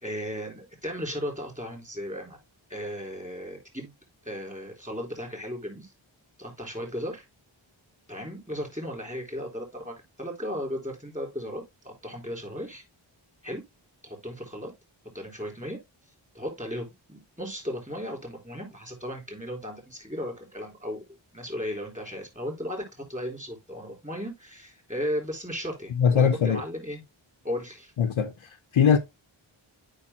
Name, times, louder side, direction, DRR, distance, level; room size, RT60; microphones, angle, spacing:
voice 1, 0.0-2.4 2.7-3.9 4.2-5.9 6.4-7.2 8.1-12.8 13.4-13.6 14.0-14.7 15.1-15.8 16.3-21.0 21.3-27.0 27.4-27.9, equal, 15° right, 3.6 m, -35 dB
voice 2, 26.0-26.6 28.0-29.0, left 7 dB, 80° left, 0.8 m, -21 dB
8.7 x 5.2 x 2.7 m
cardioid pair, 45°, 49 cm